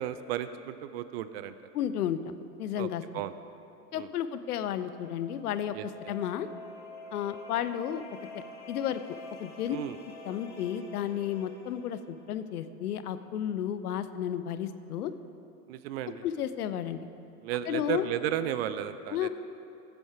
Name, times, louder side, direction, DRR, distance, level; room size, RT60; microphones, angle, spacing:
voice 1, 0.0-1.5 2.8-2.9 3.1-3.3 3.9-4.1 5.7-6.1 9.7-10.0 15.7-16.2 17.4-19.3, right 11 dB, 40° right, 13 dB, 0.5 m, -34 dB
voice 2, 1.7-3.0 3.9-5.8 6.1-6.5 7.1-8.0 8.3-9.0 9.4-9.8 10.2-15.1 16.2-17.1 17.7-18.1 19.1-19.3, left 10 dB, 70° left, 12 dB, 0.7 m, -32 dB
sound 1, 4.6-12.3, left 2 dB, 90° left, 2.4 m, -48 dB
15.0 x 7.9 x 4.8 m, 2.8 s
hypercardioid pair, 100°, 48 cm